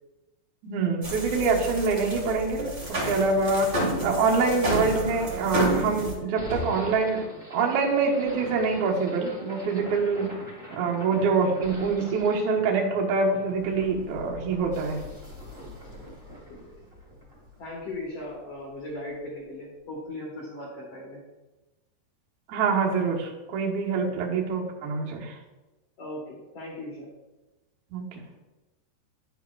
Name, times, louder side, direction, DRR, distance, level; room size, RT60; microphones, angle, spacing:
voice 1, 0.6-3.7 4.0-7.2 7.5-10.3 10.7-15.0 22.5-25.3 27.9-28.0, right 4 dB, 85° right, -2 dB, 1.6 m, -25 dB
sound 1, 1.0-6.1, right 1 dB, 70° right, 0.9 m, -30 dB
sound 2, 6.3-18.5, equal, 25° right, 0.7 m, -42 dB
voice 2, 17.6-21.2 23.9-24.1 26.0-27.1, left 1 dB, 80° left, -5 dB, 1.3 m, -38 dB
10.5 x 7.6 x 2.3 m, 1.1 s
omnidirectional pair, 5.3 m